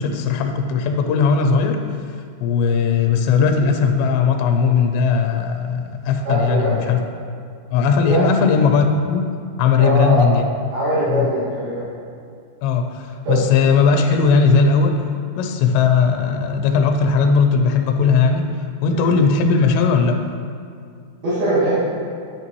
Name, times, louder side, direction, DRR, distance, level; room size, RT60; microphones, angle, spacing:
voice 1, 0.0-1.8 2.4-7.0 7.7-10.4 11.1-11.3 12.6-15.0 15.4-18.5 18.8-20.2, left 5 dB, 80° left, 5 dB, 2.7 m, -18 dB
voice 2, 6.3-6.8 8.0-8.2 9.8-10.3 10.7-11.9 13.3-13.5 19.0-19.1 21.2-21.8, right 1 dB, 60° right, -12 dB, 3.6 m, -21 dB
9.7 x 8.4 x 3.1 m, 2.3 s
omnidirectional pair, 5.1 m